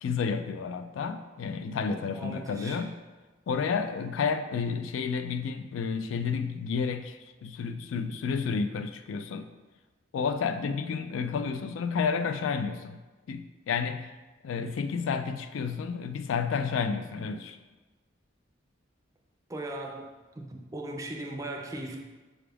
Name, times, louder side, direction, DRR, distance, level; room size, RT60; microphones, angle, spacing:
voice 1, 0.0-3.0 3.5-9.5 10.1-13.0 13.3-14.1 14.4-17.6, left 5 dB, 85° left, 9 dB, 0.3 m, -31 dB
voice 2, 2.1-2.8 19.5-22.0, right 1 dB, 15° right, 1 dB, 0.4 m, -38 dB
5.9 x 2.3 x 3.4 m, 1.2 s
head